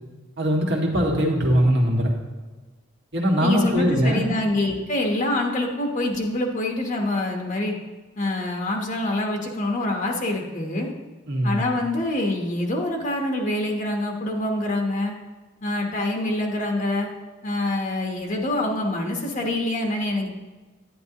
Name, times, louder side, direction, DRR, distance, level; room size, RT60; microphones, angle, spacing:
voice 1, 0.4-2.1 3.1-4.4 11.3-11.7, equal, 60° right, -1 dB, 1.8 m, -21 dB
voice 2, 3.4-7.8 8.2-10.9 11.4-15.1 15.6-17.1 17.4-20.3, left 1 dB, 40° left, 1 dB, 1.0 m, -25 dB
10.5 x 9.9 x 2.9 m, 1.3 s
head